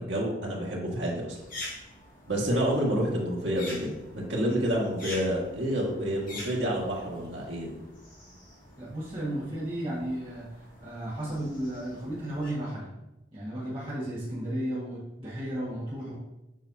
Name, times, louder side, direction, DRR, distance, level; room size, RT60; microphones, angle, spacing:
voice 1, 0.0-1.4 2.2-7.7, equal, 80° right, -3 dB, 1.8 m, -28 dB
sound 1, 1.3-12.5, left 1 dB, 45° left, 2.1 m, -46 dB
voice 2, 8.8-12.9 13.3-16.2, right 1 dB, 30° right, -9 dB, 1.7 m, -34 dB
7.5 x 5.5 x 2.7 m, 0.97 s
head